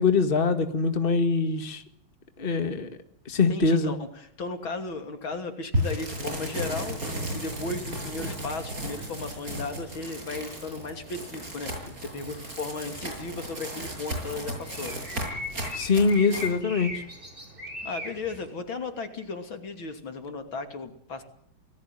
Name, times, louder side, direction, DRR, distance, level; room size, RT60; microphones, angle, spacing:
voice 1, 0.0-1.8 2.4-2.9 3.3-3.9 15.7-17.0, left 4 dB, 25° left, 8 dB, 2.1 m, -23 dB
voice 2, 3.5-7.0 7.3-11.7 12.0-15.0 17.8-21.2, left 3 dB, 70° left, 7 dB, 3.6 m, -35 dB
sound 1, 5.7-16.5, equal, 40° right, 8.1 m, -34 dB
sound 2, 8.3-18.5, left 1 dB, 25° right, 5.6 m, -42 dB
28.5 x 19.5 x 9.3 m, 0.65 s
omnidirectional pair, 2.3 m